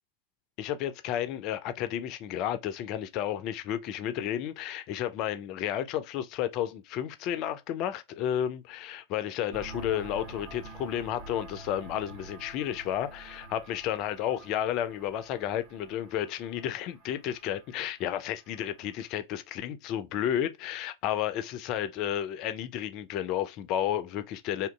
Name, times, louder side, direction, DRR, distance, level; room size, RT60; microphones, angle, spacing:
voice 1, 0.6-24.7, left 10 dB, 40° left, 0.3 m, -32 dB
sound 1, 9.5-19.0, right 3 dB, 45° right, 0.7 m, -48 dB
2.7 x 2.4 x 2.2 m
figure-of-eight pair, 90°, 0 cm